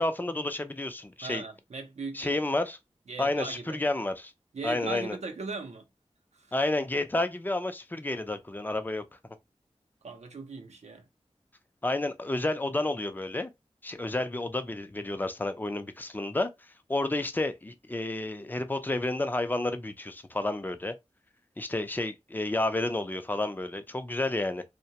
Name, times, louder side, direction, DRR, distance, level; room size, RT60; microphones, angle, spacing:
voice 1, 0.0-1.4 2.1-2.8 3.2-4.3 4.6-5.2 6.5-9.0 11.8-13.5 13.8-16.5 16.9-20.9 21.6-24.6, left 2 dB, 15° left, 0.4 m, -30 dB
voice 2, 1.2-2.4 3.1-3.8 4.5-5.9 6.3-6.5 10.0-11.1, right 4 dB, 80° right, 0.6 m, -39 dB
2.2 x 2.1 x 2.7 m
cardioid pair, 45°, 11 cm